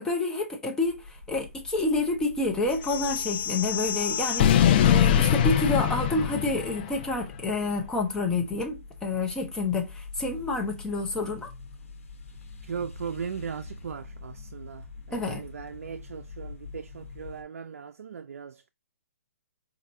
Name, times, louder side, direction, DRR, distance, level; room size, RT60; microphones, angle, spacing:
voice 1, 0.0-11.5 15.1-15.4, left 2 dB, 10° left, 0.7 m, -29 dB
sound 1, 0.8-17.4, left 3 dB, 65° left, 1.1 m, -45 dB
sound 2, 2.8-7.1, left 10 dB, 40° left, 0.4 m, -23 dB
voice 2, 12.6-18.7, right 7 dB, 85° right, 0.3 m, -38 dB
4.3 x 2.6 x 2.6 m
hypercardioid pair, 145°, 8 cm